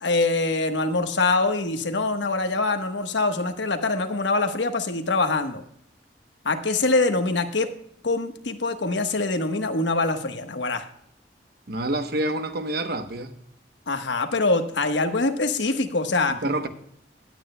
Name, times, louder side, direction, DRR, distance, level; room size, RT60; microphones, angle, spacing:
voice 1, 0.0-5.6 6.4-7.7 8.0-10.8 13.9-16.4, left 3 dB, 85° left, 1.2 m, -24 dB
voice 2, 11.7-13.3 16.3-16.7, right 1 dB, 60° right, 1.0 m, -27 dB
18.0 x 9.1 x 2.2 m
head